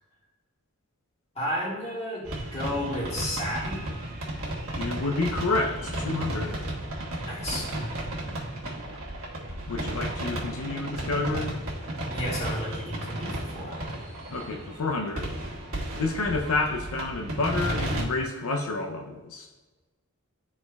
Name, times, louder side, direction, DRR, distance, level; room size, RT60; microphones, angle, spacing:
voice 1, 1.3-4.0 7.2-7.7 12.1-14.0, left 1 dB, 30° left, -4 dB, 1.7 m, -33 dB
sound 1, 2.3-18.0, right 1 dB, 75° right, 1.5 m, -33 dB
voice 2, 4.8-6.7 9.7-11.6 14.3-15.4 16.0-19.5, left 3 dB, 85° left, 2 dB, 0.6 m, -29 dB
12.0 x 4.3 x 2.3 m, 1.2 s
head